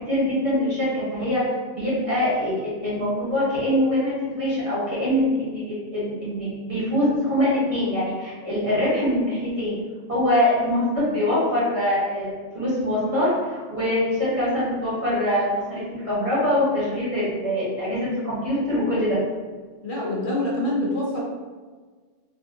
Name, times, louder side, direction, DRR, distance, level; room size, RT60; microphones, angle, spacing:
voice 1, 0.1-1.4 1.7-9.7 10.1-19.2, left 1 dB, 30° right, -10 dB, 1.4 m, -23 dB
voice 2, 19.8-21.2, left 1 dB, 50° left, -4 dB, 0.7 m, -25 dB
3.5 x 2.4 x 2.6 m, 1.4 s
omnidirectional pair, 1.3 m